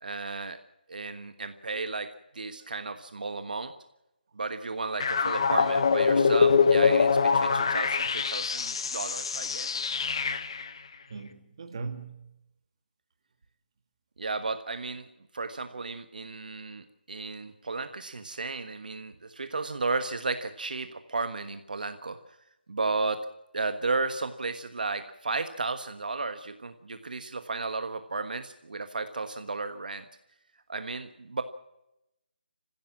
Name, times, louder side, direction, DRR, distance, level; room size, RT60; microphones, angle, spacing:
voice 1, 0.0-0.6 0.9-3.7 4.3-9.8 14.2-15.1 15.3-22.2 22.7-23.3 23.5-30.0 30.7-31.4, right 3 dB, 60° right, 1.4 m, -34 dB
sound 1, 5.0-10.7, left 5 dB, 30° left, 1.0 m, -24 dB
voice 2, 11.1-12.3, right 4 dB, 30° right, 2.0 m, -39 dB
26.5 x 15.5 x 7.4 m
hypercardioid pair, 175°, 5 cm